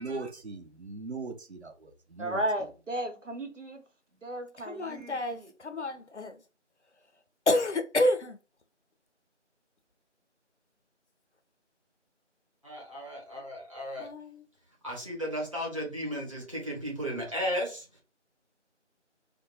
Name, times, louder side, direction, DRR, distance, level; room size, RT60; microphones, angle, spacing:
voice 1, 0.0-2.4, right 3 dB, 60° right, 0.7 m, -39 dB
voice 2, 2.2-3.8 4.2-5.5, right 1 dB, 85° right, 1.1 m, -34 dB
voice 3, 4.6-6.4 7.5-8.4 14.0-14.4, left 1 dB, 70° left, 0.7 m, -29 dB
voice 4, 12.6-14.1 14.8-17.8, equal, 25° right, 1.0 m, -34 dB
2.6 x 2.3 x 4.0 m
figure-of-eight pair, 170°, 36 cm